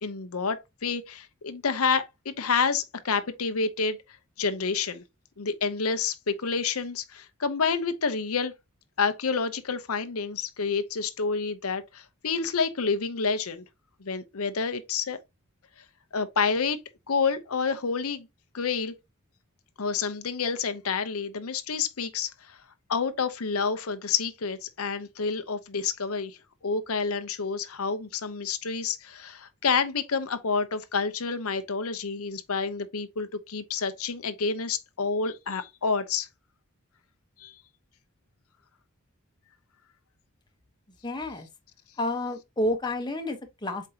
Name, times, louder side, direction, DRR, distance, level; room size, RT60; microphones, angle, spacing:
voice 1, 0.0-4.0 4.4-5.0 5.4-8.5 9.0-13.6 14.0-15.2 16.1-16.8 17.1-18.3 18.5-18.9 19.8-22.6 22.9-26.4 26.6-36.3 37.4-37.5, left 5 dB, 90° left, 0.8 m, -29 dB
voice 2, 41.0-41.5 42.0-43.9, left 1 dB, 20° left, 1.0 m, -30 dB
7.5 x 4.6 x 2.8 m
head